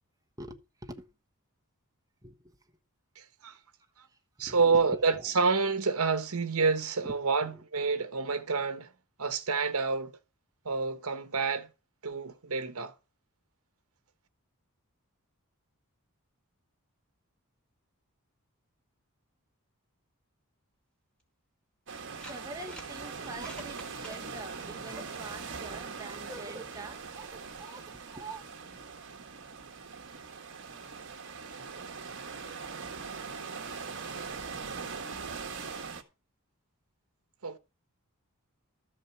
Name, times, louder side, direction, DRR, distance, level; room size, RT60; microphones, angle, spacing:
voice 1, 0.4-1.1 2.2-2.7 3.5-3.6 4.0-5.3 7.0-7.2 7.4-7.6 21.9-28.4, right 2 dB, 15° right, 1.1 m, -45 dB
voice 2, 3.2-3.5 4.4-8.9 9.2-10.1 10.6-11.7 12.0-12.9 37.4-37.6, right 4 dB, 75° right, 1.1 m, -28 dB
sound 1, 21.2-21.3 22.0-22.9 23.3-24.2, right 1 dB, 5° left, 2.2 m, -48 dB
sound 2, 21.9-36.0, right 5 dB, 55° right, 1.5 m, -41 dB
13.0 x 5.0 x 7.1 m
head